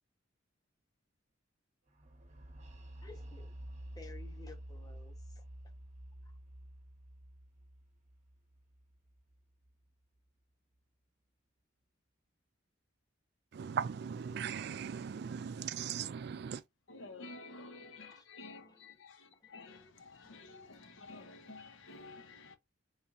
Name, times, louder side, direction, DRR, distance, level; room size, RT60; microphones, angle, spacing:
sound 1, 2.0-9.7, right 1 dB, 35° right, 0.9 m, -50 dB
voice 1, 3.0-3.5 4.0-5.4 17.6-17.7 18.1-18.2 18.6-18.7 19.4-19.5 20.2-20.3 20.7-20.8 22.0-22.1, left 4 dB, 20° left, 0.8 m, -55 dB
voice 2, 13.5-16.6, right 7 dB, 55° right, 0.3 m, -38 dB
voice 3, 16.9-22.6, left 3 dB, 75° left, 0.8 m, -51 dB
3.7 x 3.3 x 2.8 m
head